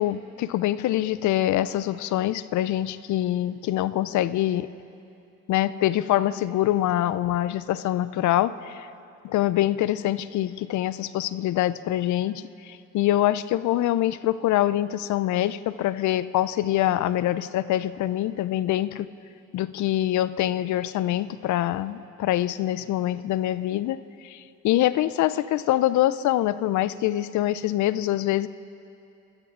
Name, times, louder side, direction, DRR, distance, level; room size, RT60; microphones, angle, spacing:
voice 1, 0.0-4.7 5.5-8.9 9.2-19.1 19.5-28.5, left 13 dB, 70° left, 16 dB, 0.5 m, -25 dB
18.0 x 12.5 x 3.7 m, 2.6 s
cardioid pair, 90°, 30 cm